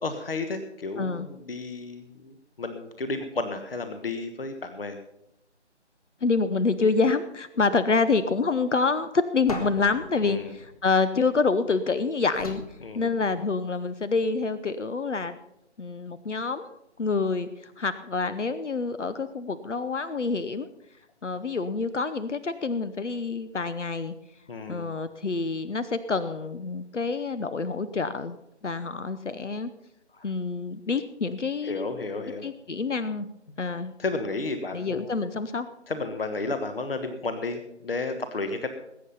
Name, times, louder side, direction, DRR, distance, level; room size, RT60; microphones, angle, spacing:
voice 1, 0.0-5.0 10.2-10.5 12.8-13.1 24.5-24.9 30.1-30.3 31.6-32.4 34.0-35.2 35.9-38.7, left 3 dB, 50° left, 8 dB, 1.3 m, -32 dB
voice 2, 1.0-1.3 6.2-12.6 12.9-15.4 15.8-20.7 21.2-24.1 24.7-28.4 28.6-29.7 30.2-31.9 32.4-33.3 33.6-33.9 34.7-35.7, left 4 dB, 80° left, 12 dB, 0.9 m, -27 dB
sound 1, 9.5-11.7 12.3-13.7, left 2 dB, 30° left, 1.8 m, -39 dB
20.0 x 8.8 x 5.6 m, 0.85 s
figure-of-eight pair, 160°, 35 cm